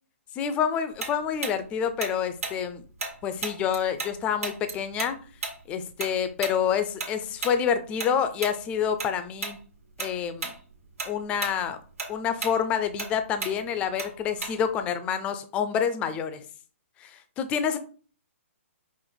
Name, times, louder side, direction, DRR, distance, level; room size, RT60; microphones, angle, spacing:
voice 1, 0.4-2.8 3.2-5.2 5.7-9.6 10.0-10.5 11.1-11.8 12.1-16.4 17.0-17.8, left 8 dB, 15° left, 10 dB, 0.4 m, -28 dB
Tick-tock, 1.0-4.1 4.4-9.1 9.4-9.6 10.0-10.6 10.9-14.8, right 4 dB, 85° right, 1.5 m, -35 dB
5.1 x 2.5 x 3.8 m, 0.40 s
hypercardioid pair, 155°, 7 cm